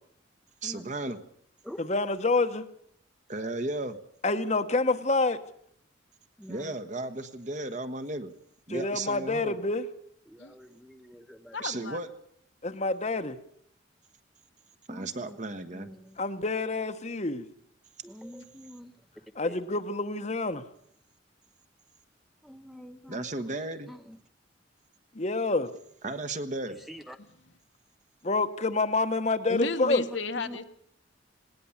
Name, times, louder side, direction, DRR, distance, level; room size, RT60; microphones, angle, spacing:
voice 1, 0.6-1.2 3.3-4.0 6.5-8.3 8.7-9.6 11.6-12.1 14.9-15.9 23.1-23.9 26.0-26.8, right 2 dB, 40° right, 9 dB, 1.3 m, -34 dB
voice 2, 1.8-2.6 4.2-5.4 8.7-9.8 12.6-13.4 16.2-17.5 19.3-20.6 25.1-25.7 28.2-30.0, left 3 dB, 35° left, 10 dB, 1.1 m, -27 dB
voice 3, 6.4-6.7 10.3-11.6 14.9-15.4 15.7-16.2 18.0-18.9 19.4-19.6 22.4-23.3 23.9-24.2 26.7-27.2 30.3-30.6, equal, ahead, 8 dB, 0.9 m, -45 dB
voice 4, 11.5-12.0 29.5-30.6, left 3 dB, 65° left, 8 dB, 1.3 m, -32 dB
19.5 x 18.5 x 7.2 m, 0.65 s
head